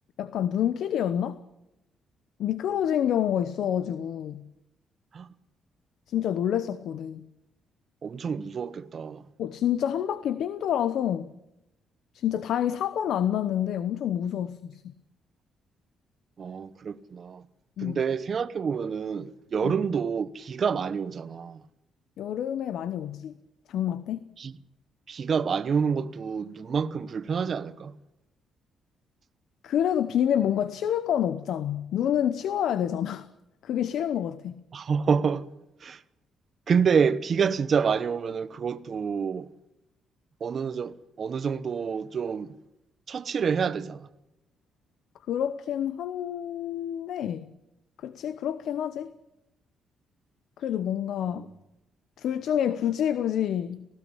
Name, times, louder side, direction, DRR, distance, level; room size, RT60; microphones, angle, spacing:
voice 1, 0.2-1.4 2.4-4.4 6.1-7.2 9.4-11.3 12.1-14.8 17.8-18.0 19.6-19.7 22.2-23.3 23.7-24.2 29.6-33.3 33.6-34.5 45.3-47.5 48.0-49.1 50.6-51.5 52.2-53.8, left 10 dB, 75° left, 0.9 m, -28 dB
voice 2, 8.0-9.2 16.4-17.5 17.8-21.6 24.4-24.6 25.1-28.0 34.7-35.5 35.8-36.0 36.7-39.5 40.4-42.5 43.1-44.1 51.3-51.4, right 6 dB, 50° right, 1.1 m, -28 dB
19.0 x 16.0 x 10.0 m
cardioid pair, 90°, 0 cm